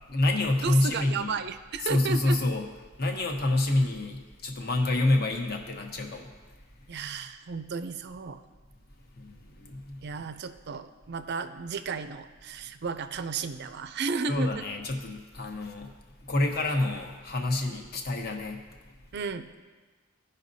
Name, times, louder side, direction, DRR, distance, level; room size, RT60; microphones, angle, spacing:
voice 1, 0.1-1.4 1.8-2.7 3.0-6.3 9.1-10.0 14.3-15.9 16.2-18.9, left 2 dB, 50° left, 2 dB, 1.0 m, -28 dB
voice 2, 0.6-2.4 6.9-8.4 10.0-14.7 19.1-19.6, right 5 dB, 55° right, 11 dB, 0.4 m, -33 dB
16.0 x 5.4 x 2.7 m, 1.3 s
head